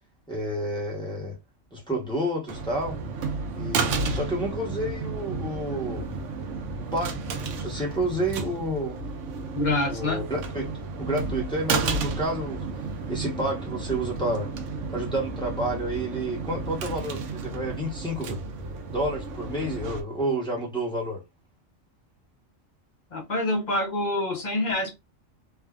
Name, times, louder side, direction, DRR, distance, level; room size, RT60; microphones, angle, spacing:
voice 1, 0.3-1.4 1.7-3.0 3.5-6.1 6.8-7.2 7.6-9.0 9.9-12.7 13.1-14.5 14.9-18.4 18.9-21.2, right 1 dB, 5° left, 0.6 m, -30 dB
sound 1, 2.5-20.0, right 4 dB, 70° right, 0.9 m, -32 dB
voice 2, 9.5-10.2 23.1-24.9, left 2 dB, 45° left, 0.6 m, -26 dB
3.3 x 2.1 x 2.3 m
omnidirectional pair, 1.4 m